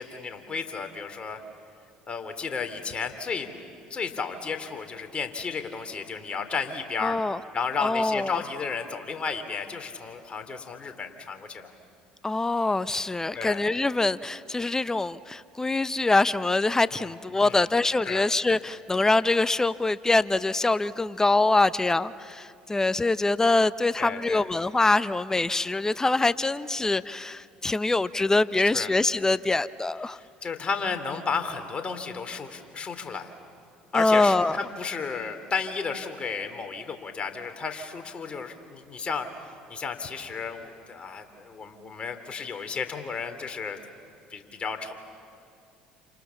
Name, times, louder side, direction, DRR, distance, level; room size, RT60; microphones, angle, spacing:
voice 1, 0.0-1.4 2.1-3.5 3.9-7.2 7.5-11.7 13.3-13.6 16.9-17.1 17.4-17.6 18.0-18.2 24.0-24.4 28.7-28.9 30.1-33.3 33.9-39.3 39.7-43.8 44.3-44.9, left 5 dB, 35° left, 7 dB, 3.3 m, -33 dB
voice 2, 7.0-7.4 7.8-8.4 12.2-30.2 33.9-34.6, left 2 dB, 15° left, 16 dB, 0.8 m, -24 dB
29.0 x 28.0 x 7.2 m, 2.4 s
hypercardioid pair, 65°, 3 cm